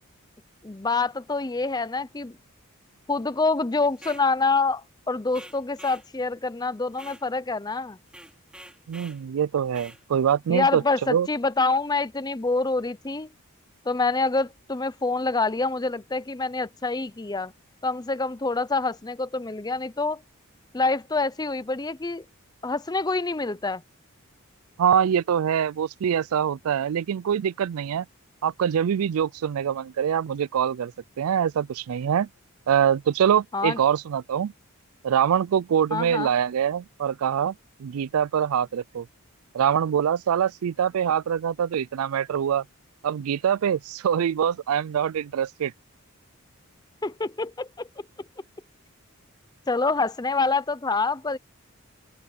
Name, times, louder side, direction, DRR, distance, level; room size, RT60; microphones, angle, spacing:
voice 1, 0.6-2.4 3.1-8.0 10.5-13.3 13.9-17.5 17.8-20.2 20.7-22.2 22.6-23.8 33.5-33.8 35.9-36.3 47.0-47.9 49.7-51.4, left 3 dB, 20° left, 0.5 m, -26 dB
sound 1, 3.9-4.3 5.3-6.1 6.9-7.3 8.1-9.2 9.7-10.0, right 1 dB, 5° right, 5.6 m, -46 dB
voice 2, 8.9-10.8 11.1-11.3 24.8-28.1 28.4-30.9 31.2-32.3 32.7-34.5 35.0-37.5 37.8-39.1 39.5-42.6 43.0-45.7, right 8 dB, 75° right, 0.4 m, -24 dB
open air
head